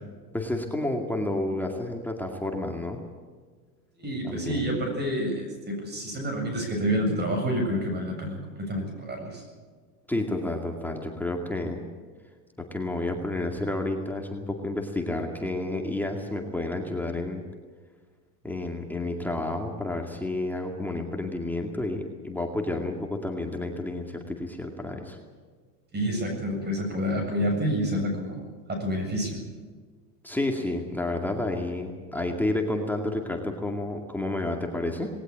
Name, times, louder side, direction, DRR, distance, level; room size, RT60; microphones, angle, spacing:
voice 1, 0.3-3.0 4.2-4.6 10.1-11.8 12.7-17.4 18.4-25.2 30.2-35.1, left 2 dB, 5° left, 2 dB, 2.3 m, -30 dB
voice 2, 4.0-9.4 25.9-29.4, equal, 20° right, 3 dB, 7.5 m, -28 dB
20.0 x 18.5 x 8.8 m, 1.5 s
supercardioid pair, 135°, 47 cm